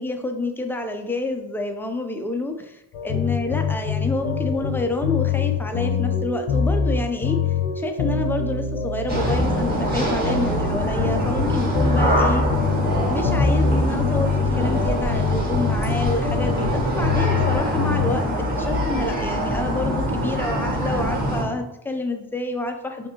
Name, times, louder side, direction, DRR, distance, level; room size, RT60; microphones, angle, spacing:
voice 1, 0.0-7.4 7.7-12.4 13.0-23.1, left 2 dB, 5° left, 5 dB, 0.3 m, -28 dB
sound 1, 2.9-18.1, left 5 dB, 85° left, 0.8 m, -24 dB
sound 2, 9.1-21.4, right 1 dB, 20° right, 1.4 m, -24 dB
4.7 x 2.7 x 2.8 m, 0.84 s
cardioid pair, 80°, 48 cm